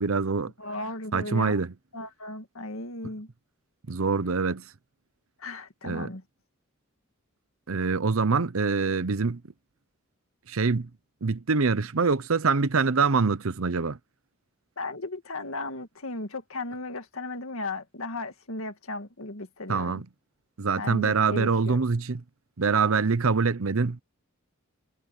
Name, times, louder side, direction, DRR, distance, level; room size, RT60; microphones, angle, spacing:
voice 1, 0.0-0.5 1.1-1.7 3.9-4.6 5.8-6.1 7.7-9.4 10.5-10.9 11.2-14.0 19.7-20.1 20.6-22.2 22.6-24.0, right 4 dB, 70° right, 0.8 m, -25 dB
voice 2, 0.6-1.7 1.9-3.3 5.4-6.2 14.8-20.0 20.8-21.9, left 2 dB, 70° left, 2.1 m, -36 dB
head